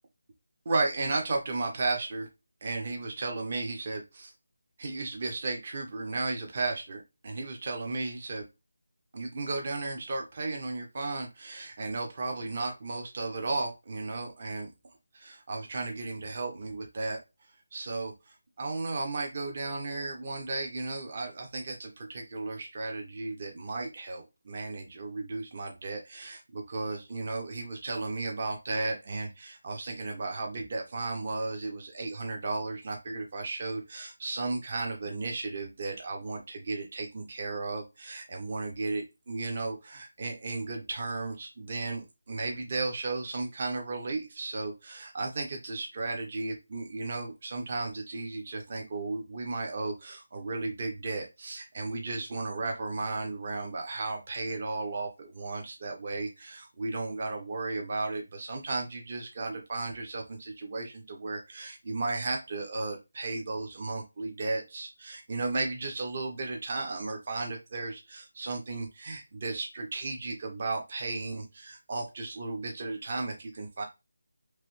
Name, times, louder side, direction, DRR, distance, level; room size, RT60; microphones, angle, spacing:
voice 1, 0.7-2.3 2.6-4.3 4.8-8.5 9.1-14.7 15.1-17.2 17.7-73.8, right 3 dB, 40° right, 3 dB, 0.6 m, -34 dB
3.1 x 2.6 x 3.0 m, 0.25 s
figure-of-eight pair, 165°, 0 cm